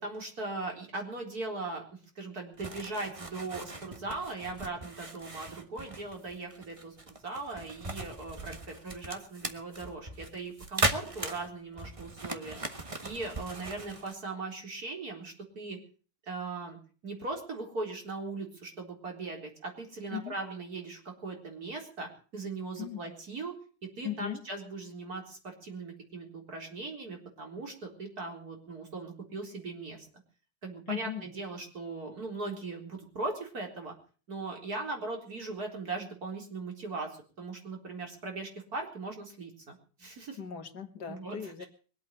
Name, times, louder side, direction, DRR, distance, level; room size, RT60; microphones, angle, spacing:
voice 1, 0.0-1.8 2.2-12.6 13.0-15.8 16.3-16.8 17.0-23.5 23.8-30.1 30.6-33.9 34.3-40.4 41.1-41.7, right 3 dB, 65° right, 2 dB, 4.5 m, -39 dB
sound 1, 2.6-14.1, right 2 dB, 20° right, 1.4 m, -38 dB
voice 2, 24.0-24.4 30.9-31.2 40.4-41.6, left 10 dB, 75° left, 6 dB, 2.2 m, -38 dB
22.5 x 8.6 x 7.6 m, 0.41 s
omnidirectional pair, 1.8 m